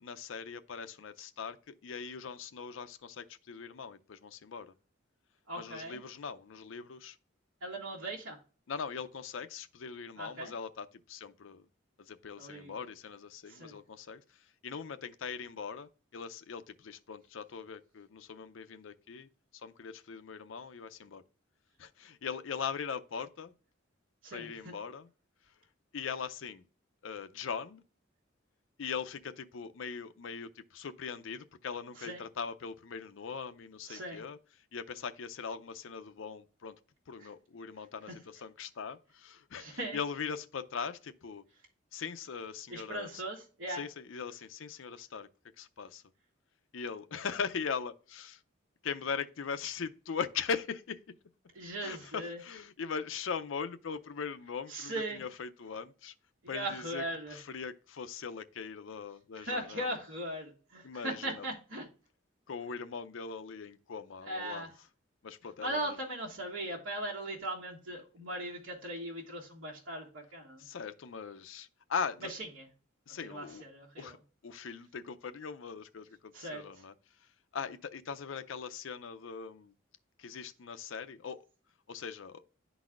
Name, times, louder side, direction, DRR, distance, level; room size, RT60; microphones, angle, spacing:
voice 1, 0.0-4.7 5.6-7.2 8.7-11.7 12.0-21.2 21.8-23.5 24.3-25.1 25.4-25.5 25.9-26.6 27.0-27.8 28.8-36.8 37.1-41.4 41.9-43.2 43.7-45.3 45.6-46.0 46.7-48.4 48.8-51.1 51.8-56.1 56.5-60.0 60.8-61.5 62.5-64.7 65.2-66.0 70.6-72.3 73.1-73.6 74.0-74.2 74.4-79.7 80.2-81.4 81.9-82.4, left 6 dB, 70° left, 0.5 m, -40 dB
voice 2, 5.5-6.0 7.6-8.4 10.2-10.5 12.4-12.7 13.5-13.8 24.2-24.7 32.0-32.2 33.9-34.2 39.6-40.0 42.7-43.8 51.5-52.4 54.7-55.2 56.4-57.4 59.4-61.9 64.3-64.7 65.6-70.7 72.3-72.7 73.3-74.1 76.3-76.6, right 1 dB, 85° right, 1.5 m, -39 dB
11.5 x 4.0 x 2.4 m
head